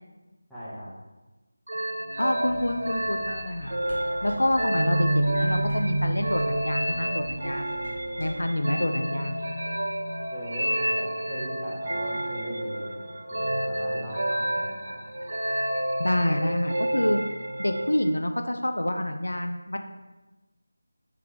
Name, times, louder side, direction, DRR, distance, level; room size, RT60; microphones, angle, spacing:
voice 1, 0.5-0.9 10.3-14.9, equal, ahead, -16 dB, 0.8 m, -38 dB
sound 1, 1.7-18.1, right 1 dB, 60° right, 0.4 m, -29 dB
voice 2, 2.2-3.8 4.2-7.8 8.2-9.4 16.0-17.2 17.6-19.9, left 1 dB, 70° left, 5 dB, 0.3 m, -27 dB
sound 2, 2.5-8.5, left 2 dB, 35° left, 1.1 m, -45 dB
3.5 x 3.3 x 2.9 m, 1.1 s
figure-of-eight pair, 165°, 0 cm